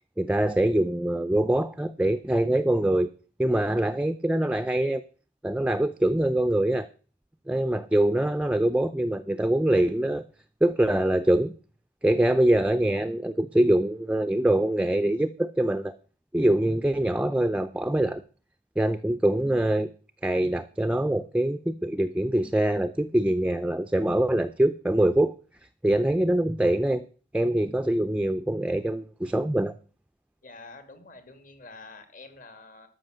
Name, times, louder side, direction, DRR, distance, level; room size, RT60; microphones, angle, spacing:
voice 1, 0.2-3.1 3.4-5.0 5.4-6.9 7.5-10.2 10.6-11.5 12.0-16.0 16.3-18.2 18.8-19.9 20.2-25.3 25.8-27.1 27.3-29.7, right 1 dB, 5° right, 10 dB, 0.5 m, -24 dB
voice 2, 30.4-32.9, left 3 dB, 50° left, 8 dB, 2.2 m, -47 dB
13.0 x 5.8 x 7.7 m, 0.40 s
head